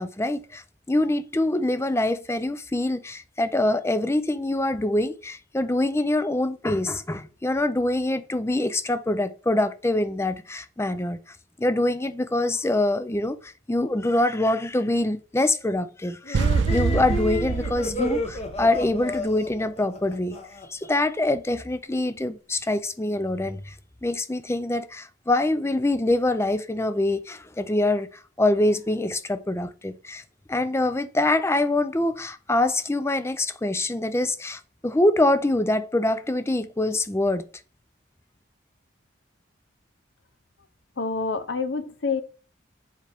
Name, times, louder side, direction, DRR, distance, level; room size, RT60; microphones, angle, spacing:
voice 1, 0.0-20.4 20.7-23.8 24.0-28.1 28.4-30.2 30.5-37.4, left 1 dB, 15° left, 0.5 m, -25 dB
sound 1, 16.2-20.9, left 1 dB, 30° left, 1.0 m, -32 dB
sound 2, 16.3-19.3, right 5 dB, 70° right, 0.4 m, -26 dB
voice 2, 41.0-42.2, left 4 dB, 65° left, 0.8 m, -27 dB
7.4 x 4.4 x 3.5 m
head